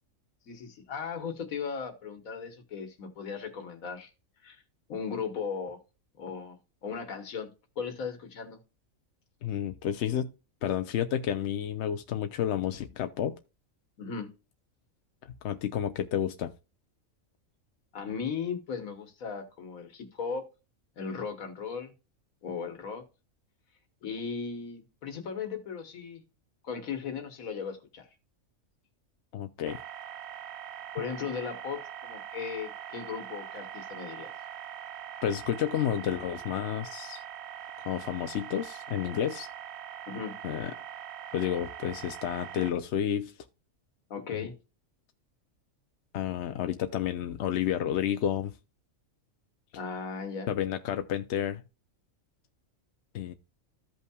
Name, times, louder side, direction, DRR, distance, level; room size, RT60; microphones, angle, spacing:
voice 1, 0.5-4.1 4.4-4.6 4.9-5.8 6.2-7.5 7.8-8.6 14.0-14.3 17.9-20.5 21.0-21.9 22.4-23.0 24.0-26.2 26.6-28.1 30.9-34.3 40.1-40.3 44.1-44.5 49.7-50.5, left 6 dB, 90° left, 1.6 m, -37 dB
voice 2, 9.4-10.3 10.6-13.4 15.2-16.5 29.3-29.8 35.2-37.2 37.9-39.5 40.4-40.7 41.3-43.3 44.3-44.5 46.1-48.6 50.5-51.6 53.1-53.3, left 10 dB, 65° left, 0.8 m, -30 dB
sound 1, 29.7-42.7, right 10 dB, 65° right, 0.7 m, -42 dB
14.5 x 5.5 x 2.3 m
omnidirectional pair, 1.4 m